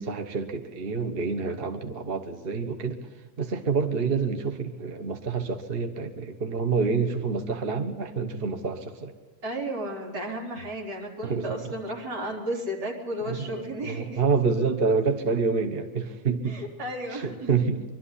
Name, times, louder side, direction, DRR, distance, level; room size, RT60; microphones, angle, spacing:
voice 1, 0.0-3.0 3.4-9.1 11.2-11.7 13.2-16.6 17.1-17.8, right 5 dB, 40° right, 6 dB, 1.3 m, -27 dB
voice 2, 9.4-14.2 16.4-17.5, right 1 dB, 90° right, -2 dB, 4.1 m, -33 dB
22.5 x 12.5 x 9.9 m, 1.2 s
omnidirectional pair, 1.8 m